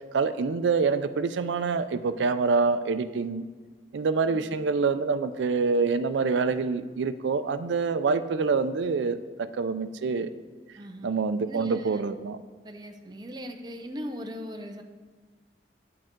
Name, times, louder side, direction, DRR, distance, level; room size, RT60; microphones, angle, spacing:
voice 1, 0.1-3.5 3.9-10.3 11.0-12.4, right 4 dB, 85° right, 11 dB, 0.4 m, -26 dB
voice 2, 10.8-11.1 11.5-12.0 12.6-14.8, equal, 25° right, 4 dB, 0.6 m, -39 dB
8.7 x 7.6 x 3.7 m, 1.4 s
head